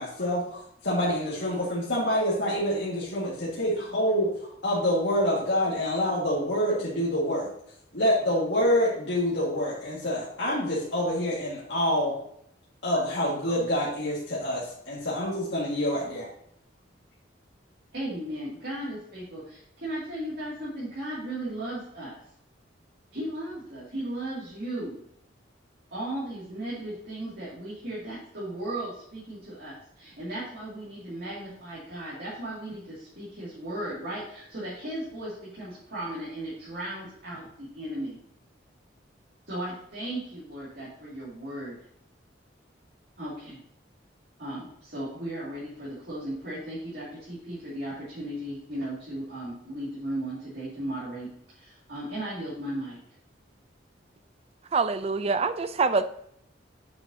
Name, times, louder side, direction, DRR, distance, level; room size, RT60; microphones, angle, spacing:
voice 1, 0.0-4.3 4.6-7.5 7.9-12.1 12.8-16.3, equal, 70° left, 1.9 m, -26 dB
voice 2, 17.9-22.2 23.1-25.0 25.9-38.2 39.5-41.8 43.2-43.6 44.4-53.0, right 1 dB, 60° right, 2.4 m, -36 dB
voice 3, 54.7-56.1, right 4 dB, 35° right, 0.4 m, -25 dB
7.7 x 6.9 x 2.8 m
head